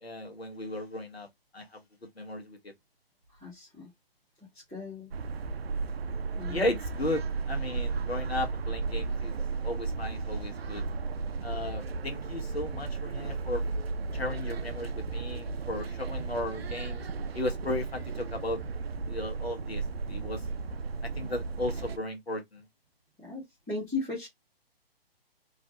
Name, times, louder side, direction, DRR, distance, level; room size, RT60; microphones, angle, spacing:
voice 1, 0.0-1.3 1.5-1.8 2.1-2.6 6.5-9.3 9.6-10.8 11.4-13.6 14.1-17.1 17.3-18.6 19.1-20.4 21.0-22.6, left 1 dB, 85° left, 1.4 m, -35 dB
voice 2, 3.4-3.9 4.7-5.1 6.3-6.6 23.2-24.3, left 3 dB, ahead, 0.3 m, -36 dB
sound 1, 5.1-22.0, right 4 dB, 80° right, 0.5 m, -34 dB
3.2 x 2.1 x 2.8 m
figure-of-eight pair, 140°, 30 cm